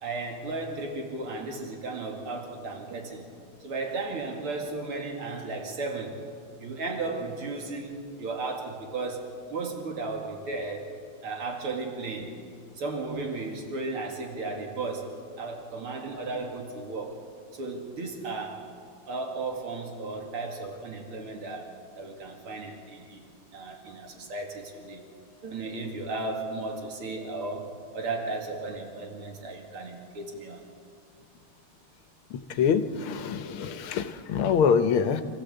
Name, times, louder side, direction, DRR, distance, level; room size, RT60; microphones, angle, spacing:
voice 1, 0.0-3.3 3.6-6.2 6.6-10.9 11.2-12.3 12.7-17.2 17.5-18.7 19.1-25.0 25.4-30.6, right 3 dB, 85° right, 2 dB, 3.0 m, -35 dB
voice 2, 32.3-35.2, left 6 dB, 80° left, 10 dB, 1.7 m, -25 dB
26.0 x 15.0 x 7.9 m, 2.2 s
omnidirectional pair, 2.4 m